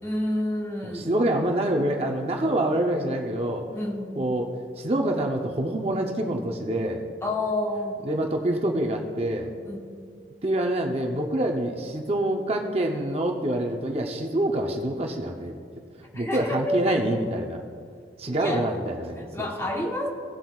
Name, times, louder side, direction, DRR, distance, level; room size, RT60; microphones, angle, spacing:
voice 1, 0.0-1.1 3.7-4.3 7.2-8.0 9.6-9.8 16.1-17.0 18.3-18.7 19.2-20.1, left 1 dB, 15° left, 0 dB, 1.0 m, -29 dB
voice 2, 0.8-3.6 4.2-7.0 8.0-9.5 10.4-15.5 16.1-17.6 18.2-19.5, right 1 dB, 30° right, 2 dB, 0.7 m, -26 dB
18.0 x 7.7 x 2.4 m, 2.2 s
head